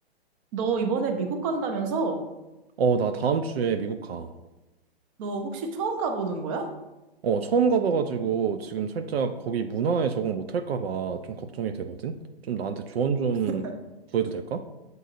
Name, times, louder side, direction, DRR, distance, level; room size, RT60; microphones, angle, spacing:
voice 1, 0.5-2.2 5.2-6.7 13.6-13.7, right 4 dB, 35° right, 4 dB, 0.6 m, -28 dB
voice 2, 2.8-4.3 7.2-12.2 12.5-13.6 14.1-14.6, right 6 dB, 75° right, 8 dB, 0.5 m, -26 dB
7.7 x 2.6 x 2.5 m, 1.1 s
hypercardioid pair, 130°, 31 cm